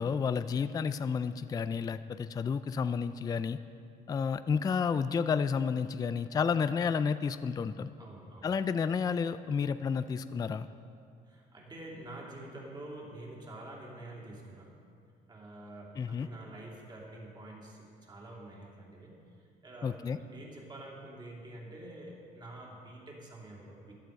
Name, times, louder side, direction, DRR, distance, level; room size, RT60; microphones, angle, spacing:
voice 1, 0.0-3.6 4.1-7.9 8.4-10.7 16.0-16.3 19.8-20.2, left 6 dB, 20° left, 12 dB, 0.3 m, -31 dB
voice 2, 8.0-8.5 11.2-14.8 15.3-23.9, right 1 dB, 25° right, -3 dB, 3.0 m, -47 dB
14.0 x 11.5 x 4.7 m, 2.4 s
cardioid pair, 110°, 17 cm